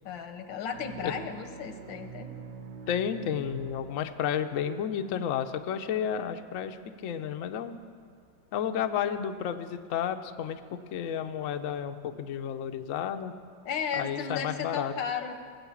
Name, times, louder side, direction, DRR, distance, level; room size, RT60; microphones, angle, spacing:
voice 1, 0.0-2.3 13.6-15.3, left 6 dB, 85° left, 7 dB, 1.7 m, -34 dB
Contrabasses Foghorn Rumble, 0.7-4.6, right 6 dB, 70° right, 0.6 m, -45 dB
voice 2, 2.9-6.8 7.0-7.8 8.5-10.6 10.9-13.3 13.9-14.9, left 8 dB, 65° left, 8 dB, 0.8 m, -31 dB
18.0 x 8.0 x 7.1 m, 2.1 s
omnidirectional pair, 2.0 m